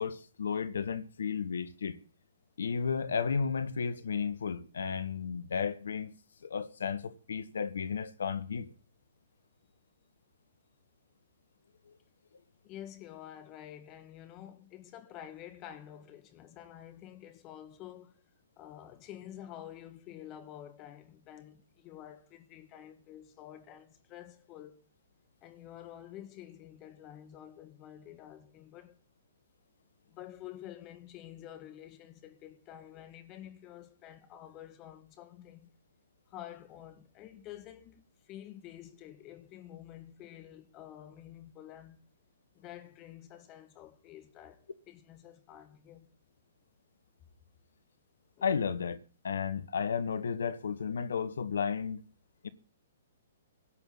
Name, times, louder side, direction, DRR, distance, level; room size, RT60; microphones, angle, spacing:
voice 1, 0.0-2.0 2.6-6.2 6.4-8.7 11.9-12.0 48.4-49.0 49.2-52.1 52.4-52.5, left 6 dB, 70° left, 1.1 m, -33 dB
voice 2, 12.6-18.1 18.6-24.8 25.4-29.0 30.1-35.7 36.3-42.0 42.6-46.1 48.4-48.5, left 11 dB, 30° left, 2.0 m, -49 dB
17.0 x 5.8 x 8.9 m
figure-of-eight pair, 120°, 0 cm